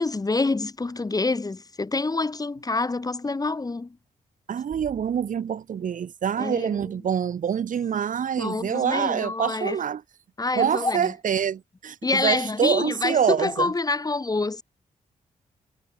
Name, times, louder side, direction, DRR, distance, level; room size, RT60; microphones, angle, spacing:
voice 1, 0.0-4.0 6.4-6.9 8.4-9.8 10.4-11.1 12.0-14.6, left 3 dB, 25° left, 3.8 m, -27 dB
voice 2, 4.5-10.0 10.5-13.7, right 8 dB, 70° right, 4.7 m, -26 dB
cardioid pair, 80°, 14 cm